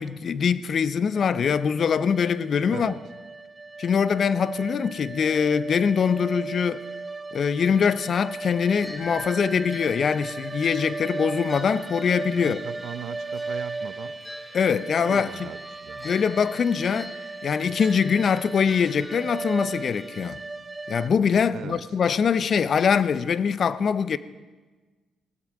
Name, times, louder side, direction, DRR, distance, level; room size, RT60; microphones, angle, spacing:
voice 1, 0.0-2.9 3.8-6.8 7.3-12.6 14.5-15.5 16.0-17.1 17.4-20.4 20.9-24.2, left 6 dB, 50° left, 0.5 m, -23 dB
sound 1, 1.1-21.1, right 3 dB, 20° right, 0.4 m, -36 dB
sound 2, 8.8-20.2, left 1 dB, 10° left, 1.4 m, -46 dB
Keyboard (musical), 9.0-10.8, equal, 85° left, 3.9 m, -41 dB
voice 2, 12.4-14.2 15.1-16.0 21.5-21.8, right 10 dB, 70° right, 0.6 m, -38 dB
17.0 x 12.5 x 4.7 m
cardioid pair, 90°, 0 cm